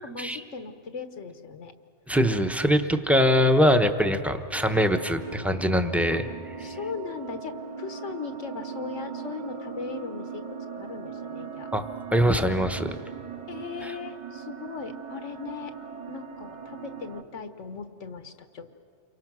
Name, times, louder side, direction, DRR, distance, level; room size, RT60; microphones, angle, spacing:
voice 1, 0.0-1.7 6.1-6.2 6.6-10.4 10.8-11.7 13.5-15.7 16.1-18.7, left 5 dB, 80° left, 8 dB, 1.6 m, -38 dB
voice 2, 2.1-6.3 11.7-11.8 12.1-13.0 13.8-14.0, equal, ahead, 6 dB, 0.9 m, -22 dB
sound 1, 4.5-17.2, right 6 dB, 40° right, 1.1 m, -40 dB
28.5 x 23.5 x 6.2 m, 2.4 s
omnidirectional pair, 1.2 m